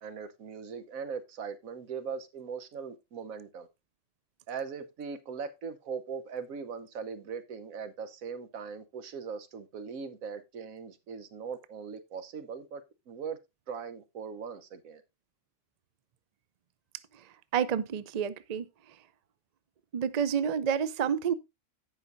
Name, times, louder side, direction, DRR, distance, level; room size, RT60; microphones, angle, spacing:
voice 1, 0.0-3.7 4.5-12.8 13.1-13.4 13.7-15.0, right 6 dB, 80° right, 1.4 m, -40 dB
voice 2, 17.5-18.7 19.9-21.3, right 8 dB, 50° right, 0.4 m, -29 dB
17.0 x 5.6 x 2.6 m
omnidirectional pair, 1.4 m